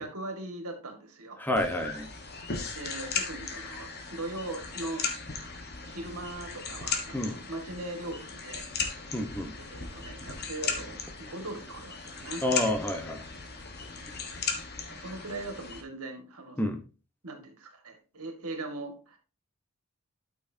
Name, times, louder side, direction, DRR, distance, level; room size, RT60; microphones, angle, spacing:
voice 1, 0.0-1.4 2.8-5.1 5.9-8.7 9.6-12.4 14.9-16.6 17.2-19.2, right 2 dB, 80° right, 5 dB, 2.0 m, -40 dB
voice 2, 1.4-2.1 7.1-7.4 9.1-9.5 12.4-13.2 16.6-16.8, left 1 dB, 10° left, 6 dB, 1.1 m, -29 dB
sound 1, 1.6-15.8, left 5 dB, 45° left, 1.4 m, -37 dB
12.0 x 6.1 x 2.8 m, 0.34 s
head